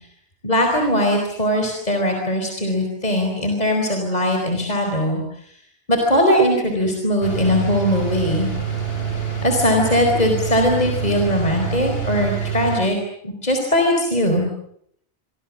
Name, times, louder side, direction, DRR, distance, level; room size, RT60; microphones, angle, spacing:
voice 1, 0.4-5.2 5.9-8.5 9.4-13.0 13.2-14.5, left 1 dB, 35° left, 3 dB, 4.6 m, -20 dB
sound 1, 7.2-12.8, right 7 dB, 60° left, 6.1 m, -26 dB
27.0 x 25.0 x 7.4 m, 0.71 s
omnidirectional pair, 1.2 m